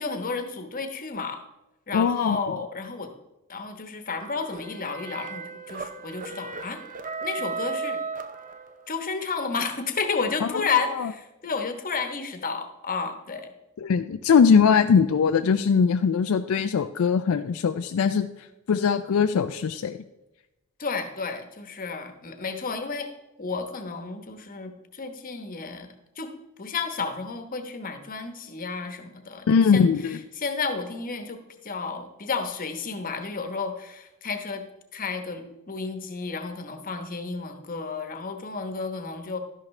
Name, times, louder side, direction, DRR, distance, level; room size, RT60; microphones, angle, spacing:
voice 1, 0.0-1.4 1.9-3.1 3.5-6.8 7.2-8.0 8.9-13.5 20.8-23.1 23.4-25.9 26.2-26.3 26.6-29.9 30.4-34.6 34.9-39.4, left 4 dB, 40° left, 6 dB, 1.0 m, -32 dB
voice 2, 1.9-2.4 10.4-10.5 11.0-11.1 13.8-20.0 29.5-30.2, left 6 dB, 70° left, 9 dB, 0.4 m, -21 dB
sound 1, 4.2-9.0, right 4 dB, 40° right, 0.6 m, -35 dB
12.0 x 11.0 x 3.2 m, 0.99 s
head